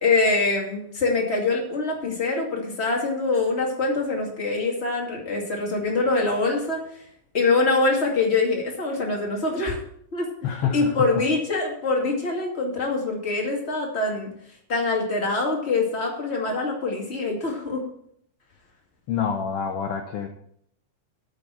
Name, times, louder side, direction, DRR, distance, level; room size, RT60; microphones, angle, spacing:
voice 1, 0.0-6.8 7.3-9.8 10.1-10.3 10.7-14.3 14.7-17.8, left 3 dB, 20° left, 0 dB, 2.2 m, -24 dB
voice 2, 10.4-11.2 19.1-20.3, left 7 dB, 70° left, 4 dB, 1.5 m, -27 dB
8.8 x 6.2 x 8.4 m, 0.68 s
omnidirectional pair, 3.6 m